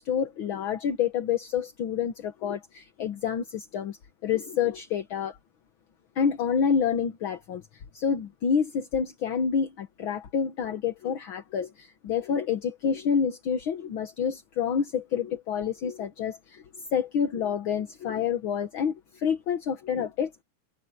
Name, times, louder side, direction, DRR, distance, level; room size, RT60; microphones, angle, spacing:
voice 1, 0.0-4.0 4.2-5.4 6.1-7.6 7.9-20.4, left 7 dB, 55° left, 1.6 m, -28 dB
open air
omnidirectional pair, 3.5 m